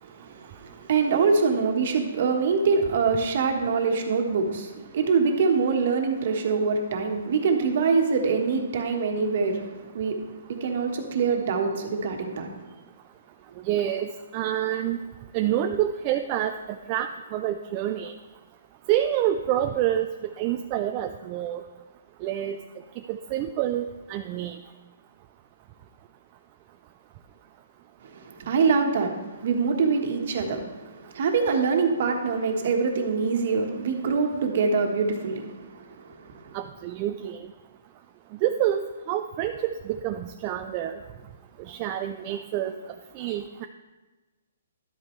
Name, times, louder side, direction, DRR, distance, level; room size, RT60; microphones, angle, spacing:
voice 1, 0.0-12.5 28.0-36.5, right 5 dB, 55° right, 3 dB, 1.4 m, -25 dB
voice 2, 13.6-15.0 15.3-18.1 18.9-20.1 20.4-21.6 22.2-22.6 23.1-24.6 36.5-37.5 38.4-41.0 41.6-42.8 43.1-43.7, right 11 dB, 30° right, 6 dB, 0.4 m, -27 dB
11.5 x 8.6 x 3.2 m, 1.2 s
hypercardioid pair, 155°, 0 cm